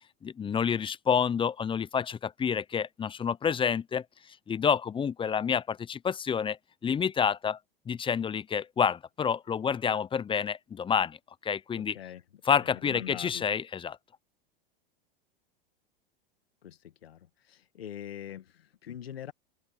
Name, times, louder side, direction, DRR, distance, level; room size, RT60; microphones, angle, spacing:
voice 1, 0.2-4.0 4.5-6.6 6.8-7.6 7.9-11.2 11.4-12.0 12.4-14.0, left 7 dB, 15° left, 0.7 m, -28 dB
voice 2, 11.8-12.2 12.6-13.4 16.6-19.3, left 10 dB, 85° left, 2.0 m, -43 dB
open air
hypercardioid pair, 100°, 29 cm